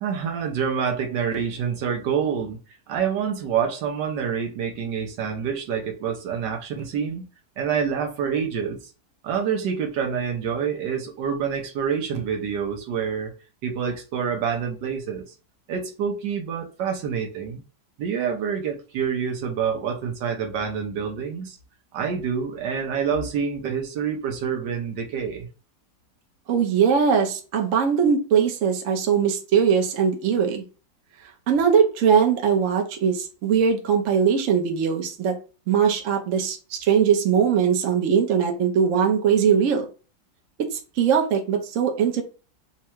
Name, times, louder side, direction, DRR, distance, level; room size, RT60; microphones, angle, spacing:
voice 1, 0.0-2.6 2.9-7.3 7.6-8.9 9.2-13.3 13.6-15.3 15.7-17.6 18.0-21.6 21.9-25.5, right 7 dB, 75° right, 1.3 m, -27 dB
voice 2, 26.5-30.6 31.5-35.4 35.7-39.9 40.7-42.2, right 7 dB, 60° right, 0.9 m, -21 dB
3.6 x 2.2 x 4.4 m
omnidirectional pair, 2.0 m